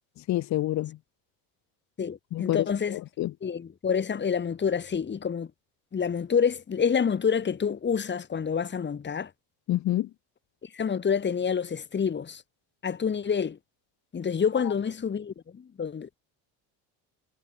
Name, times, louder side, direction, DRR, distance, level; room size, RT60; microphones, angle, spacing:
voice 1, 0.2-1.0 2.3-3.3 9.7-10.1 14.6-14.7, left 14 dB, 45° left, 0.6 m, -28 dB
voice 2, 2.0-3.0 3.4-5.5 5.9-9.3 10.6-12.4 12.8-13.6 14.1-16.1, left 6 dB, 25° left, 1.6 m, -28 dB
supercardioid pair, 105°, 41 cm